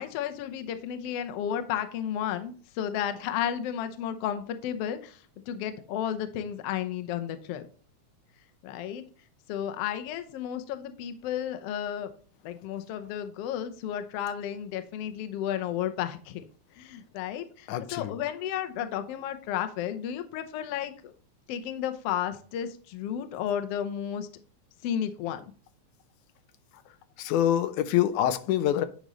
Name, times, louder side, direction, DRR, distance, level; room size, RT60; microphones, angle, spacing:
voice 1, 0.0-7.7 8.6-9.0 9.5-12.1 12.4-16.4 16.8-21.1 21.5-24.3 24.8-25.4, left 10 dB, 70° left, 1.6 m, -33 dB
voice 2, 17.7-18.1 27.2-28.9, left 11 dB, 90° left, 2.2 m, -25 dB
9.3 x 5.3 x 3.0 m
omnidirectional pair, 3.4 m